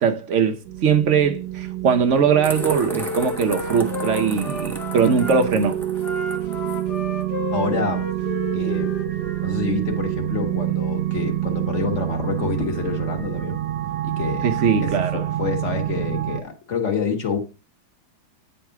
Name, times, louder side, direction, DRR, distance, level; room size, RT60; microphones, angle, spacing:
voice 1, 0.0-5.8 14.4-15.2, right 6 dB, 55° right, 0.8 m, -20 dB
sound 1, 0.7-16.4, right 13 dB, 70° right, 1.3 m, -27 dB
Wind instrument woodwind instrument, 2.1-5.4 6.0-9.5, left 3 dB, 60° left, 1.5 m, -33 dB
sound 2, 2.4-6.8, right 1 dB, ahead, 0.6 m, -37 dB
voice 2, 7.5-8.0 8.5-8.9 9.4-13.6 14.0-14.5 14.8-17.4, left 5 dB, 40° left, 1.6 m, -27 dB
9.2 x 4.0 x 4.7 m
omnidirectional pair, 2.1 m